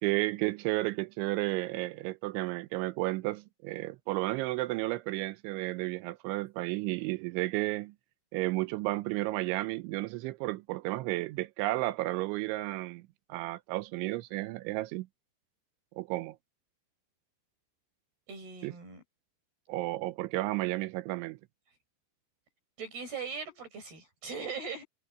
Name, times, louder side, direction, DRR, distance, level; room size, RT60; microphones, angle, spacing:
voice 1, 0.0-7.9 8.3-13.0 13.3-15.1 16.0-16.4 18.6-18.7 19.7-21.4, right 19 dB, 85° right, 3.1 m, -32 dB
voice 2, 18.3-19.0 20.3-20.4 22.8-24.8, right 5 dB, 55° right, 6.8 m, -40 dB
omnidirectional pair, 5.5 m